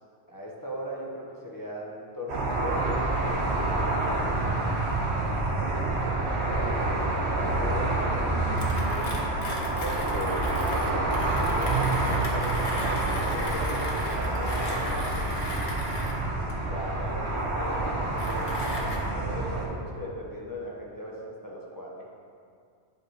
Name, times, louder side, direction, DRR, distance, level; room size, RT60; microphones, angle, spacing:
voice 1, 0.3-4.7 9.7-15.2 16.5-22.1, equal, 20° left, -5 dB, 1.0 m, -39 dB
sound 1, 2.3-19.7, right 2 dB, 70° right, 1.2 m, -27 dB
voice 2, 6.6-9.3 17.3-17.4, right 3 dB, 55° right, -1 dB, 0.8 m, -38 dB
Mechanisms, 8.6-19.0, left 2 dB, 70° left, 1.3 m, -38 dB
11.0 x 5.3 x 2.9 m, 2.2 s
omnidirectional pair, 1.2 m